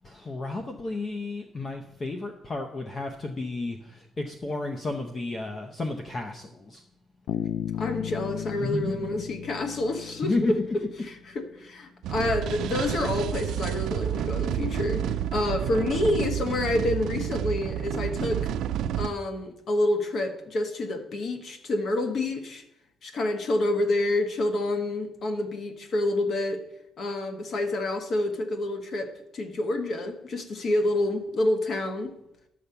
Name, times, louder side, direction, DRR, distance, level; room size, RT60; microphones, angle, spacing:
voice 1, 0.0-6.8 8.6-9.0 10.2-10.5, left 2 dB, 25° left, 4 dB, 0.7 m, -32 dB
Bass guitar, 7.3-11.1, left 11 dB, 80° left, 0.3 m, -35 dB
voice 2, 7.7-10.6 11.1-18.5 18.9-22.6 23.0-26.6 27.0-32.1, left 2 dB, 45° left, 7 dB, 1.2 m, -28 dB
sound 1, 12.0-19.1, right 10 dB, 75° right, 0.4 m, -29 dB
11.0 x 6.8 x 5.7 m, 0.82 s
cardioid pair, 160°, 0 cm